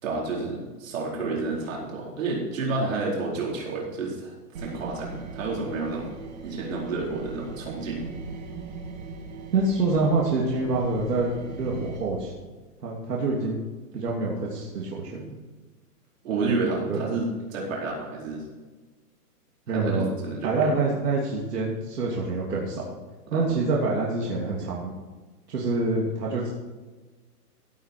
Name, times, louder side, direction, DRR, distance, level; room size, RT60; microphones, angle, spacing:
voice 1, 0.0-6.1 6.4-8.1 16.2-18.4 19.7-20.7 23.3-23.5, right 3 dB, 55° right, -3 dB, 4.6 m, -30 dB
sound 1, 4.5-12.0, right 4 dB, 25° right, 1.4 m, -39 dB
voice 2, 9.5-12.3 12.8-13.6 13.9-15.4 16.9-17.0 19.7-20.1 20.4-22.8 23.3-24.9 25.5-26.5, right 3 dB, 75° right, -4 dB, 3.1 m, -26 dB
16.0 x 8.1 x 4.6 m, 1.3 s
hypercardioid pair, 175°, 48 cm